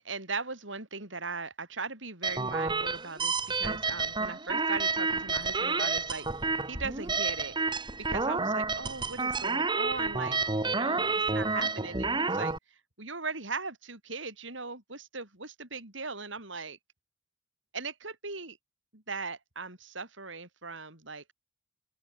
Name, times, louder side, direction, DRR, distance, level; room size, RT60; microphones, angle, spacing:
voice 1, 0.0-6.3 6.7-12.5 13.0-16.8 17.7-18.6 18.9-21.3, right 4 dB, 70° right, 7.3 m, -39 dB
sound 1, 2.2-12.6, right 3 dB, 25° right, 2.0 m, -30 dB
open air
head